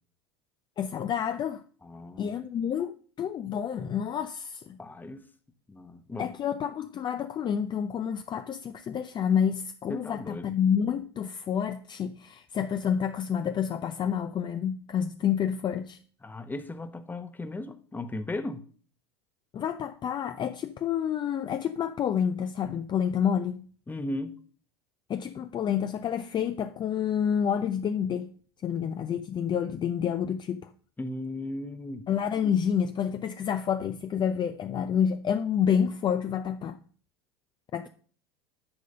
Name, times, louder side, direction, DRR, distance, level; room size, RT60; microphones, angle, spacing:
voice 1, 0.8-1.6 2.2-4.8 6.2-16.0 19.5-23.7 25.1-28.3 28.6-30.7 32.1-36.8 37.7-37.9, left 8 dB, 35° left, 0.6 m, -29 dB
voice 2, 1.8-2.4 4.8-5.2 5.7-6.3 9.9-10.5 16.2-18.7 23.9-24.4 31.0-32.1, left 2 dB, 15° left, 1.0 m, -36 dB
9.8 x 3.8 x 6.6 m
hypercardioid pair, 85°, 14 cm